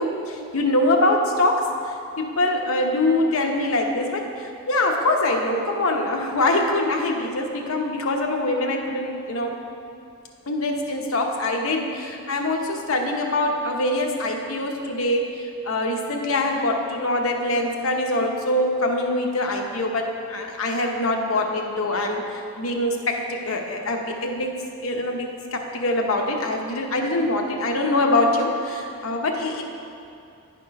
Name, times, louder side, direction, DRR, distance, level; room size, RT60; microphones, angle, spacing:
voice 1, 0.0-1.7 2.2-9.5 10.5-15.3 15.6-24.5 24.8-29.6, left 2 dB, 70° left, 2 dB, 0.9 m, -24 dB
10.5 x 4.4 x 5.2 m, 2.6 s
head